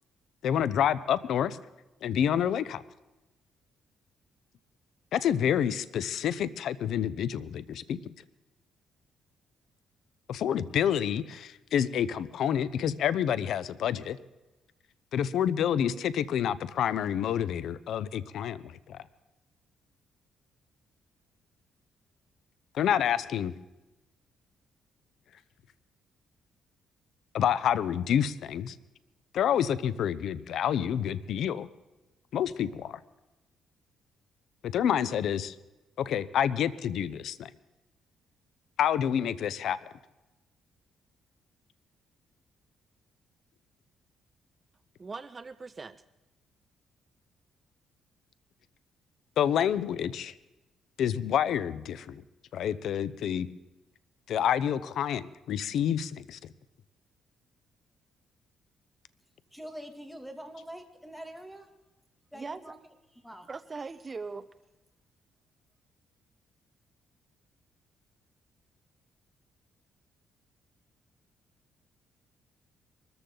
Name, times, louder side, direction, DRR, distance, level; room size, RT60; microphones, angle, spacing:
voice 1, 0.4-1.6 2.0-2.8 5.1-8.0 10.3-14.2 15.1-19.0 22.7-23.5 27.3-28.8 29.3-31.7 32.3-33.0 34.6-35.5 36.0-37.5 38.8-39.8 49.4-50.3 51.0-52.2 52.5-53.5 54.3-56.4, left 9 dB, 75° left, 16 dB, 0.7 m, -28 dB
voice 2, 45.0-46.0 62.3-62.7 63.5-64.5, right 4 dB, 30° right, 14 dB, 0.6 m, -40 dB
voice 3, 59.5-61.7 62.3-62.8 63.2-63.5, equal, ahead, 5 dB, 2.5 m, -44 dB
23.5 x 14.0 x 3.9 m, 1.0 s
cardioid pair, 90°, 0 cm